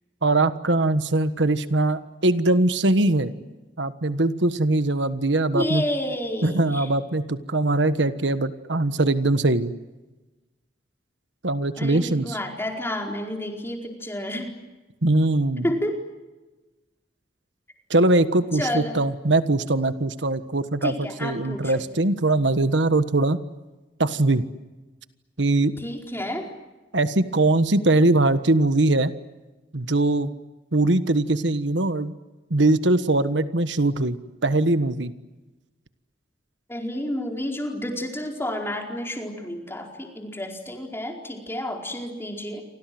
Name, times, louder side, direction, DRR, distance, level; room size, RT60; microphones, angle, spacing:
voice 1, 0.2-3.3 3.8-5.8 6.4-9.7 11.4-12.4 15.0-15.7 17.9-23.4 24.0-24.4 25.4-25.7 26.9-29.1 29.7-30.3 30.7-32.1 32.5-35.1, right 2 dB, 80° right, 12 dB, 1.4 m, -21 dB
voice 2, 5.5-6.9 11.8-14.5 15.6-16.0 18.5-19.0 20.8-21.8 25.8-26.4 36.7-42.6, left 1 dB, 15° left, 2 dB, 4.6 m, -30 dB
29.0 x 25.5 x 7.8 m, 1.2 s
head